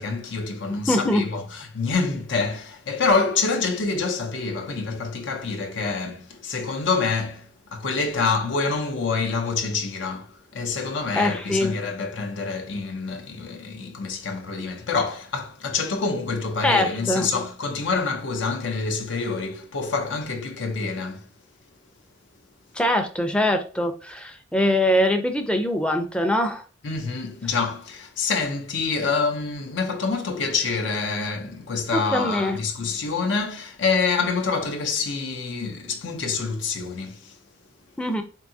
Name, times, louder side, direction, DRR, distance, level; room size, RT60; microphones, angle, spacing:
voice 1, 0.0-21.3 26.8-37.4, left 4 dB, 65° left, 0.6 m, -26 dB
voice 2, 0.9-1.3 11.1-11.7 16.6-17.3 22.7-26.6 31.9-32.6 38.0-38.2, left 1 dB, 5° left, 0.5 m, -23 dB
4.6 x 2.7 x 2.7 m
head